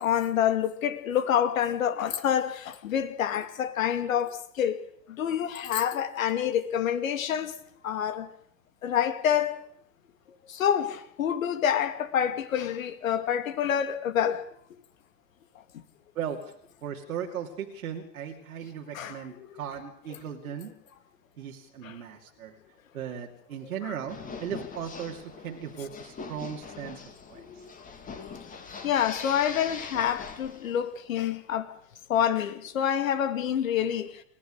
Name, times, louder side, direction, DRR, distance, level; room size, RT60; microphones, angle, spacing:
voice 1, 0.0-7.5 7.8-8.3 8.8-9.6 10.5-14.5 18.9-19.5 21.8-22.0 23.9-24.0 27.4-27.7 28.8-31.7 32.1-34.2, left 9 dB, 55° left, 2.4 m, -27 dB
voice 2, 16.1-16.5 16.8-20.7 21.4-22.6 22.9-27.0 27.3-27.7, right 8 dB, 60° right, 2.6 m, -37 dB
sound 1, 24.1-30.9, left 5 dB, 15° left, 2.8 m, -42 dB
28.5 x 15.5 x 6.6 m
figure-of-eight pair, 100°, 49 cm